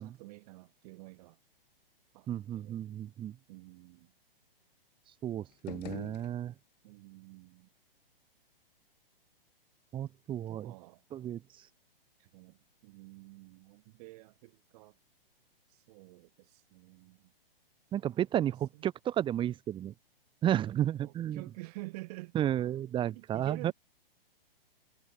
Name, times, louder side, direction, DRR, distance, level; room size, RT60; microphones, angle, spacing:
voice 1, 0.0-1.4 2.1-2.8 3.5-4.1 5.8-6.2 6.8-7.7 10.5-11.0 12.2-15.0 15.7-17.3 18.7-18.9 21.0-22.4 23.1-23.7, right 23 dB, 40° right, 5.2 m, -49 dB
voice 2, 2.3-3.4 5.2-6.5 9.9-10.7 11.1-11.4 17.9-19.9 20.4-21.4 22.3-23.7, right 11 dB, 15° right, 1.1 m, -32 dB
sound 1, 5.5-6.9, left 19 dB, 45° left, 7.2 m, -46 dB
figure-of-eight pair, 120°, 30 cm